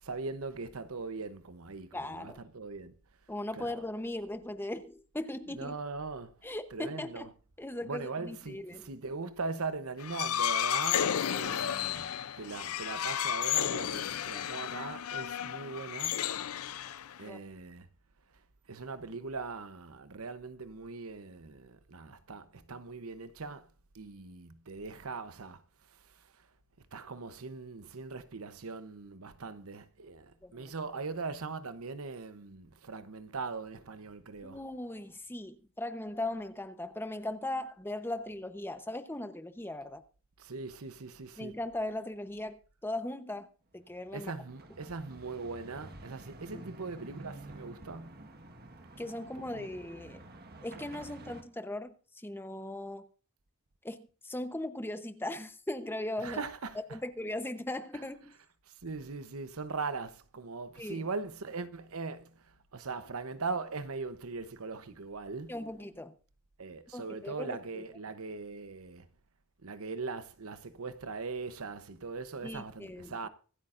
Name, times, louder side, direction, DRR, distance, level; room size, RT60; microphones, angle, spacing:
voice 1, 0.0-2.9 3.5-3.8 5.5-6.3 6.7-7.3 7.8-16.2 17.2-17.9 18.7-23.7 23.9-25.6 26.9-34.6 40.4-41.6 44.1-48.2 49.6-49.7 56.2-57.0 57.9-58.0 58.8-62.4 62.7-65.5 66.6-69.1 69.6-73.3, right 4 dB, 85° right, 0.9 m, -40 dB
voice 2, 1.9-2.4 3.3-5.7 6.4-7.3 7.6-8.9 17.2-17.4 30.4-30.7 34.4-40.0 41.4-43.5 43.7-44.3 46.5-46.6 49.0-50.2 50.6-53.1 53.8-56.4 56.9-58.3 60.8-61.0 65.5-66.1 66.9-67.8 72.4-73.2, left 1 dB, 10° left, 0.9 m, -38 dB
sound 1, 10.0-17.3, left 10 dB, 85° left, 0.5 m, -32 dB
sound 2, 43.7-51.4, right 2 dB, 50° right, 1.6 m, -50 dB
24.5 x 8.5 x 2.6 m
head